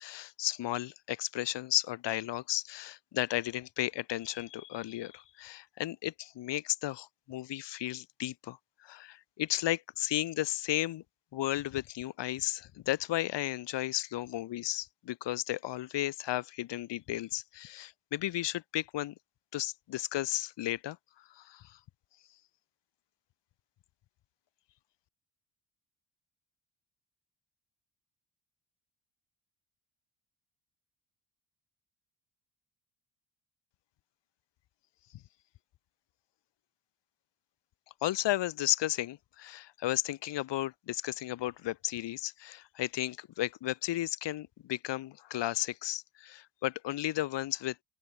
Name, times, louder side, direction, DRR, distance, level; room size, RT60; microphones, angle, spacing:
voice 1, 0.0-11.0 11.3-19.1 19.5-21.0 21.3-21.8 38.0-47.8, left 14 dB, 70° left, 1.7 m, -34 dB
open air
cardioid pair, 90°, 45 cm